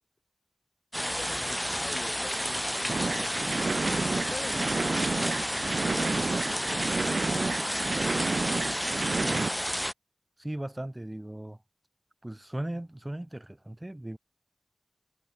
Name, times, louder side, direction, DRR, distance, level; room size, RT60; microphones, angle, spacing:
voice 1, 0.9-3.8 4.1-5.4 5.7-8.1, left 3 dB, 75° left, 2.5 m, -45 dB
sound 1, 0.9-9.9, equal, 5° left, 1.4 m, -31 dB
sound 2, 2.9-9.5, right 3 dB, 75° right, 0.4 m, -30 dB
voice 2, 9.2-9.5 10.4-11.6 12.2-14.2, right 1 dB, 20° right, 3.1 m, -37 dB
wide cardioid pair, 50°, 0 cm